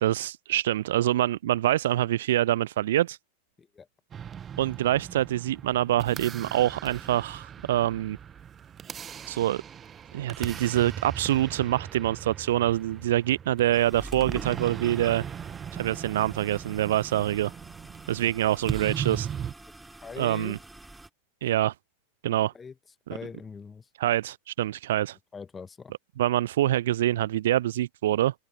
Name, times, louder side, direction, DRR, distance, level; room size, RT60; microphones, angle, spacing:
voice 1, 0.0-3.2 4.6-8.2 9.3-9.6 10.1-15.2 15.7-17.5 18.1-19.3 20.2-20.6 21.4-21.7 22.2-22.5 24.0-25.2 26.2-28.3, right 13 dB, 60° right, 0.4 m, -25 dB
sound 1, 4.1-19.5, right 8 dB, 25° right, 1.3 m, -39 dB
sound 2, 13.7-21.1, right 2 dB, 5° right, 3.3 m, -46 dB
voice 2, 20.0-20.6 22.5-22.7 23.1-23.9 25.3-25.9, left 5 dB, 15° left, 1.4 m, -41 dB
open air
figure-of-eight pair, 90°, 0 cm